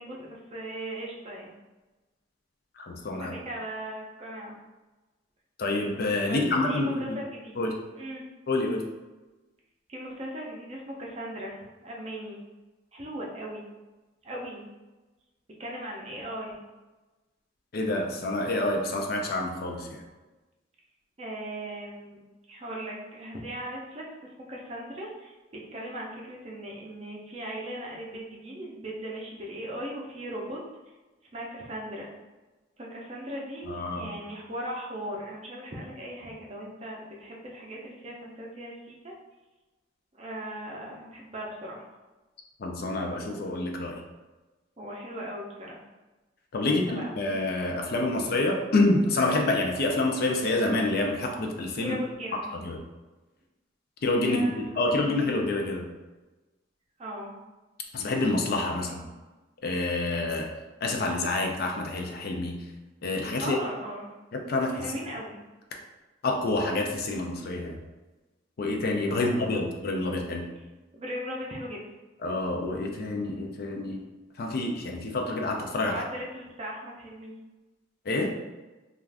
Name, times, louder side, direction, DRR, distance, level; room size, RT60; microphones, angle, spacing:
voice 1, 0.0-1.5 3.2-4.6 6.2-7.6 7.9-8.3 9.9-12.4 12.9-13.6 14.2-14.7 15.6-16.6 21.2-22.2 22.5-30.6 31.3-32.1 32.8-39.1 40.2-41.8 44.8-45.8 46.6-47.1 51.8-52.5 54.2-54.6 55.0-55.2 57.0-57.3 58.8-59.1 60.0-60.2 63.4-64.1 64.7-65.4 69.1-69.6 70.9-71.8 75.9-77.3, equal, 30° right, -2 dB, 0.5 m, -38 dB
voice 2, 2.8-3.4 5.6-7.2 7.6-7.7 8.5-8.8 17.7-19.9 33.7-34.1 42.6-44.0 46.5-51.9 52.6-52.8 54.0-55.8 57.9-59.0 59.6-60.5 60.8-62.6 63.0-63.6 64.3-64.8 66.2-67.8 68.6-70.5 72.2-74.0 74.4-76.0 78.1-78.3, left 2 dB, 50° left, 1 dB, 0.4 m, -27 dB
2.4 x 2.3 x 3.3 m, 1.2 s
head